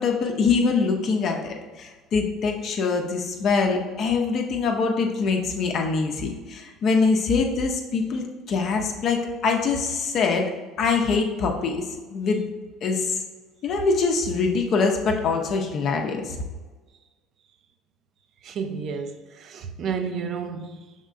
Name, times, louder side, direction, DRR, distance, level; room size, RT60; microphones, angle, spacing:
voice 1, 0.0-10.4 10.8-11.8 12.1-12.4 12.8-13.2 13.6-16.4, left 4 dB, 55° left, 0.7 m, -24 dB
voice 2, 18.4-20.9, right 6 dB, 55° right, 0.5 m, -31 dB
5.2 x 3.6 x 2.5 m
supercardioid pair, 75°, 0 cm